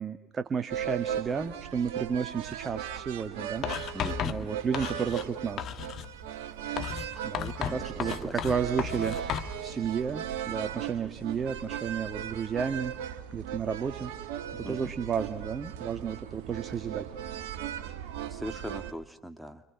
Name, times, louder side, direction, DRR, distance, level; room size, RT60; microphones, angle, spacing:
voice 1, 0.0-3.7 3.9-5.7 7.2-17.1, right 6 dB, 35° right, 9 dB, 1.8 m, -33 dB
sound 1, 0.7-18.9, right 9 dB, 70° right, 1.6 m, -37 dB
Writing, 3.6-5.3 5.6-6.1 6.8-9.5, left 9 dB, 50° left, 1.7 m, -34 dB
voice 2, 3.9-4.5 7.6-8.3 14.6-14.9 18.3-19.6, equal, ahead, 9 dB, 2.1 m, -40 dB
29.5 x 27.0 x 6.0 m, 0.73 s
hypercardioid pair, 60°, 0 cm